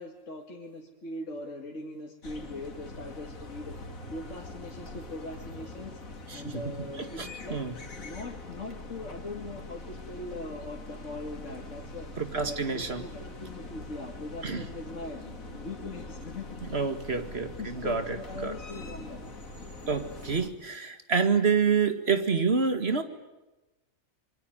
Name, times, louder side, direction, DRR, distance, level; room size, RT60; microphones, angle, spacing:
voice 1, 0.0-3.8 4.1-6.0 6.3-7.6 7.9-12.1 12.4-15.2 15.6-16.5 17.6-19.2, left 2 dB, 60° left, 0 dB, 2.6 m, -41 dB
sound 1, 2.2-20.5, left 2 dB, 80° left, 3.0 m, -43 dB
voice 2, 6.3-7.8 12.2-13.1 14.4-14.6 16.7-18.5 19.9-23.0, right 5 dB, 50° right, 8 dB, 2.3 m, -28 dB
26.5 x 24.0 x 9.3 m, 1.0 s
omnidirectional pair, 1.4 m